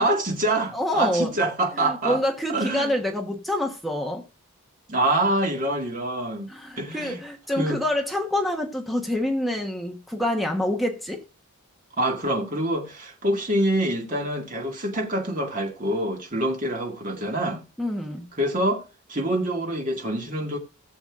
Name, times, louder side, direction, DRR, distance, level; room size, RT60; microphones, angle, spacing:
voice 1, 0.0-2.2 2.5-2.9 4.9-6.5 6.8-7.2 7.6-7.8 12.0-17.6 18.4-20.6, right 1 dB, 35° right, 2.0 m, -25 dB
voice 2, 0.7-1.3 1.8-4.2 6.5-11.2 17.8-18.2, left 1 dB, ahead, 1.2 m, -27 dB
18.0 x 7.1 x 2.5 m
head